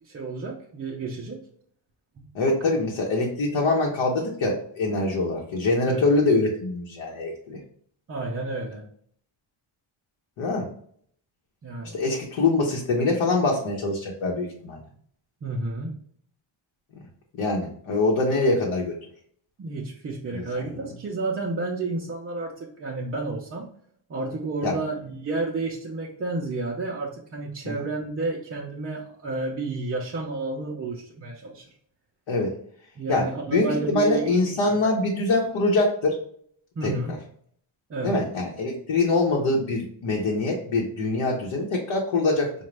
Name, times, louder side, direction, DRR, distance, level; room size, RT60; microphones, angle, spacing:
voice 1, 0.0-1.4 2.2-2.3 5.9-6.1 8.1-8.8 11.6-12.0 15.4-16.0 19.6-23.7 24.1-31.7 33.0-34.8 36.8-37.2 37.9-38.2, right 3 dB, 30° right, -2 dB, 0.4 m, -31 dB
voice 2, 2.3-7.6 10.4-10.7 11.9-14.8 17.4-18.9 20.3-20.7 24.6-24.8 27.6-27.8 32.3-32.5 33.1-33.2 33.5-36.2 36.8-36.9 38.0-42.5, left 2 dB, 75° left, -2 dB, 0.8 m, -24 dB
4.9 x 2.2 x 3.1 m, 0.63 s
wide cardioid pair, 160°, 46 cm